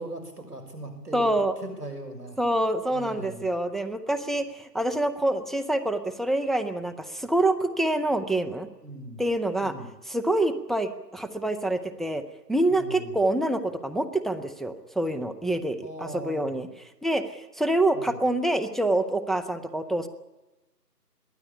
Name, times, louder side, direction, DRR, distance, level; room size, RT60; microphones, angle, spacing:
voice 1, 0.0-2.4 2.9-3.4 8.8-9.2 9.6-9.9 12.7-13.1 15.8-16.5 17.9-18.2, right 1 dB, 65° right, 5 dB, 6.2 m, -39 dB
voice 2, 1.1-1.6 2.4-8.7 9.2-9.7 10.1-12.2 12.5-16.7 17.0-20.1, right 1 dB, ahead, 6 dB, 0.6 m, -26 dB
22.0 x 15.0 x 9.9 m, 1.1 s
figure-of-eight pair, 175°, 50 cm